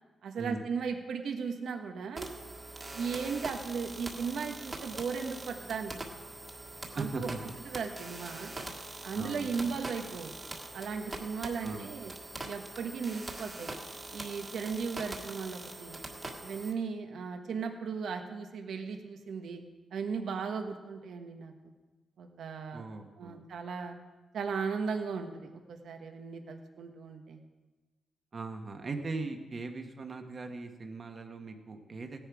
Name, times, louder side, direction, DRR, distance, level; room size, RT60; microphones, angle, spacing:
voice 1, 0.2-2.3 2.9-6.0 6.9-7.3 7.7-8.5 9.0-12.1 12.4-13.7 14.1-16.0 16.4-19.6 19.9-21.5 22.2-22.8 23.2-23.9 24.3-27.4, right 5 dB, 70° right, 5 dB, 1.3 m, -36 dB
sound 1, 2.1-16.7, right 2 dB, 20° right, 1.7 m, -43 dB
voice 2, 6.9-7.4 9.1-9.7 11.6-11.9 22.7-23.5 28.3-32.3, right 3 dB, 35° right, 5 dB, 1.3 m, -39 dB
16.0 x 10.5 x 4.9 m, 1.2 s
wide cardioid pair, 140°, 0 cm